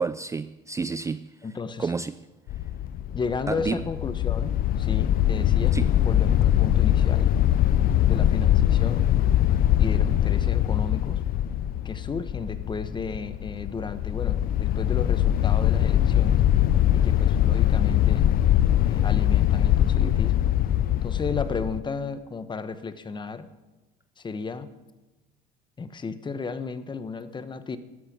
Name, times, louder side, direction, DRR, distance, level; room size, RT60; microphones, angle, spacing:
voice 1, 0.0-1.3 1.8-2.3 3.5-3.8 5.7-5.9, right 4 dB, 15° right, 0.4 m, -29 dB
voice 2, 1.4-1.9 3.1-5.8 6.0-7.3 8.1-9.1 9.8-11.2 11.8-16.4 16.9-18.3 18.8-20.5 21.0-23.5 24.2-24.7 25.8-27.8, left 4 dB, 25° left, 1.0 m, -34 dB
sound 1, 2.5-21.8, left 11 dB, 55° left, 0.5 m, -22 dB
13.5 x 11.0 x 6.1 m
supercardioid pair, 95°, 19 cm